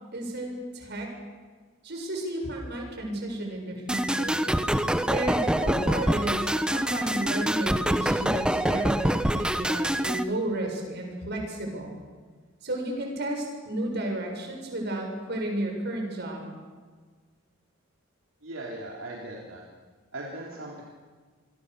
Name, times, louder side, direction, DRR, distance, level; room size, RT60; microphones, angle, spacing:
voice 1, 0.1-1.1 1.8-4.5 5.1-12.0 12.6-16.5, right 1 dB, 55° right, 2 dB, 7.1 m, -33 dB
sound 1, 3.9-10.2, right 1 dB, 5° right, 1.0 m, -25 dB
voice 2, 18.4-19.6 20.1-20.8, right 1 dB, 75° right, -3 dB, 3.8 m, -38 dB
26.5 x 23.5 x 6.9 m, 1.5 s
head